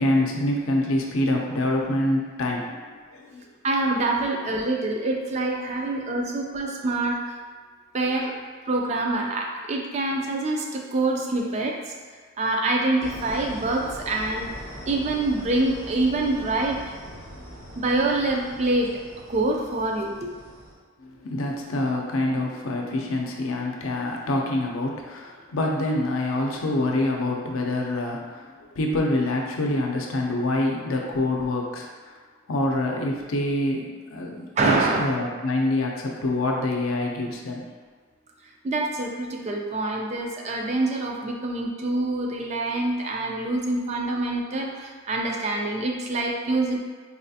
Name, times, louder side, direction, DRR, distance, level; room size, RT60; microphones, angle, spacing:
voice 1, 0.0-3.4 21.0-32.1 32.5-37.6, left 1 dB, 80° left, 0 dB, 0.5 m, -26 dB
voice 2, 3.6-7.2 7.9-8.3 8.7-11.9 12.4-14.5 14.9-16.8 17.8-19.0 19.3-20.3 34.6-35.0 38.6-46.8, right 2 dB, 35° right, 1 dB, 0.4 m, -25 dB
sound 1, 13.0-20.7, equal, 60° right, 1.3 m, -41 dB
4.1 x 2.4 x 2.7 m, 1.5 s
head